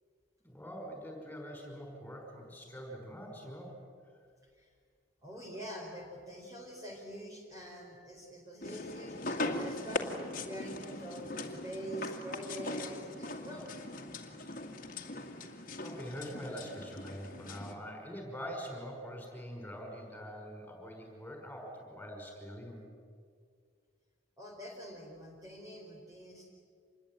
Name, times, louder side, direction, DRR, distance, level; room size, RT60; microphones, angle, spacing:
voice 1, 0.4-3.8 15.8-22.8, equal, 10° left, 1 dB, 5.6 m, -44 dB
voice 2, 5.2-10.1 10.4-13.7 24.4-26.5, equal, 20° right, -2 dB, 4.3 m, -45 dB
sound 1, 8.6-17.7, left 2 dB, 45° left, 2.2 m, -40 dB
27.0 x 21.5 x 9.1 m, 2.1 s
head